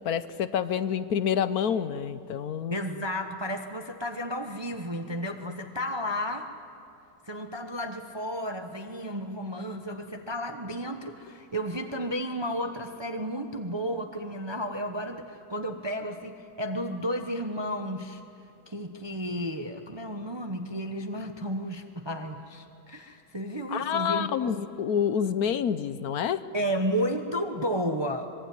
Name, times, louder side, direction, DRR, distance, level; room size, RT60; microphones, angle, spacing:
voice 1, 0.0-2.8 23.7-26.4, left 8 dB, 65° left, 14 dB, 1.2 m, -28 dB
voice 2, 2.7-6.5 7.2-18.2 18.7-24.6 26.5-28.3, equal, 20° right, 5 dB, 0.8 m, -32 dB
25.0 x 21.5 x 9.4 m, 2.6 s
omnidirectional pair, 1.9 m